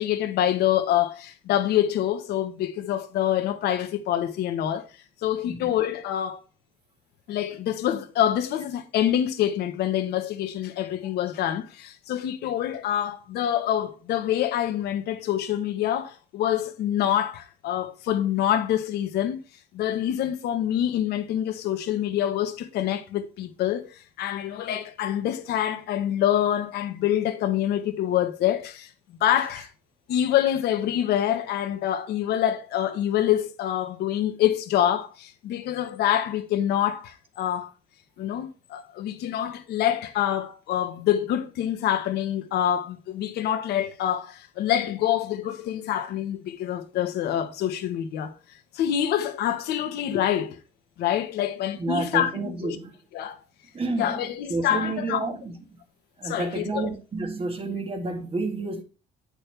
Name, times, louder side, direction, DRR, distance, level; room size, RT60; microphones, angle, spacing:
voice 1, 0.0-4.8 5.2-6.4 7.3-19.4 19.7-28.9 29.2-29.7 30.1-37.7 38.2-48.3 48.7-50.6 51.0-52.8 53.1-53.4 54.0-55.3 56.2-56.9, left 11 dB, 75° left, 1.3 m, -26 dB
voice 2, 51.8-52.9 53.7-55.6 56.2-58.8, right 3 dB, 35° right, 1.8 m, -30 dB
8.7 x 6.4 x 3.4 m
cardioid pair, 110°, 17 cm